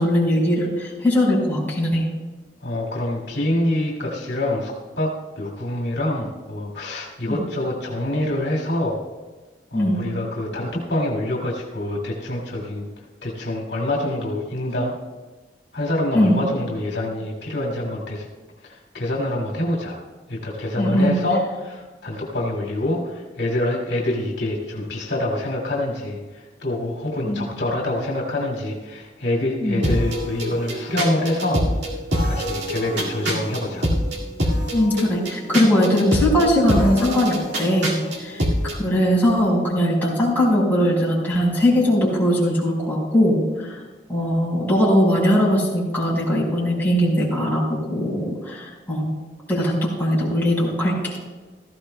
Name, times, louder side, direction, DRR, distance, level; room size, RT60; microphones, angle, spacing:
voice 1, 0.0-2.0 7.3-7.4 9.7-10.0 16.1-16.4 20.8-21.1 27.2-27.4 29.6-29.8 34.7-43.8 44.1-49.1 49.5-51.1, equal, 10° left, -6 dB, 4.6 m, -20 dB
voice 2, 2.6-9.0 9.7-12.8 13.2-14.9 15.7-18.3 18.6-20.0 20.3-31.6 32.2-33.9, left 1 dB, 75° left, -2 dB, 2.3 m, -26 dB
sound 1, 29.8-38.8, equal, 80° right, 2.2 m, -25 dB
17.0 x 14.5 x 2.2 m, 1.3 s
head